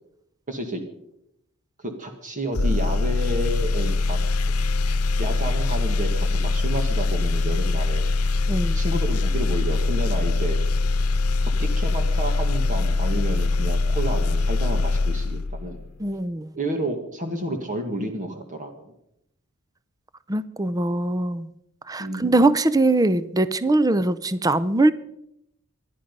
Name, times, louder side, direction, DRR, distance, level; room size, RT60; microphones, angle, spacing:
voice 1, 0.5-0.8 1.8-4.2 5.2-8.1 8.7-10.6 11.6-15.8 16.5-18.9 22.0-22.3, right 1 dB, 35° right, 5 dB, 1.8 m, -30 dB
sound 1, 2.5-15.9, left 3 dB, 85° left, 0.9 m, -23 dB
voice 2, 8.5-8.8 16.0-16.6 20.3-21.5 21.9-24.9, right 2 dB, 15° right, 15 dB, 0.5 m, -21 dB
24.0 x 10.0 x 5.3 m, 0.80 s
head